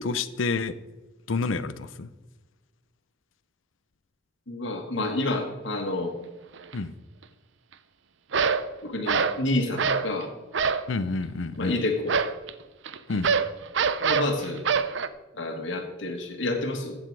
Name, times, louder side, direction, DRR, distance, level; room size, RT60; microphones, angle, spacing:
voice 1, 0.0-0.7 1.3-2.1 6.7-6.9 10.9-11.8 13.1-13.3, left 3 dB, 85° left, 14 dB, 0.6 m, -29 dB
voice 2, 4.5-6.1 8.8-10.3 11.6-12.1 14.0-14.6 15.3-17.0, left 2 dB, 70° left, 2 dB, 1.7 m, -29 dB
sound 1, 6.6-6.7 8.3-8.7 9.1-9.4 9.8-10.1 10.5-10.9 12.1-15.1, right 5 dB, 70° right, 0.7 m, -25 dB
14.5 x 8.1 x 4.7 m, 1.1 s
head